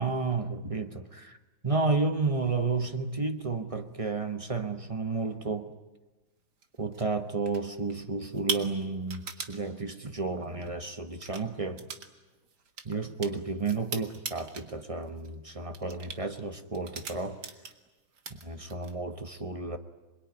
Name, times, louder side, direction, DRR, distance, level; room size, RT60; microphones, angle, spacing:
voice 1, 0.0-1.4 1.6-5.7 6.8-11.8 12.8-17.4 18.4-19.8, right 3 dB, 25° right, 7 dB, 0.7 m, -32 dB
sound 1, 6.6-7.1 7.5-7.9 8.2-9.6 10.5-10.7 11.1-11.4 11.8-12.1 12.3-14.7 15.0-15.4 15.7-16.2 16.7-17.9 18.2-18.9, right 6 dB, 55° right, 2.1 m, -38 dB
27.0 x 22.0 x 9.6 m, 1.1 s
omnidirectional pair, 2.2 m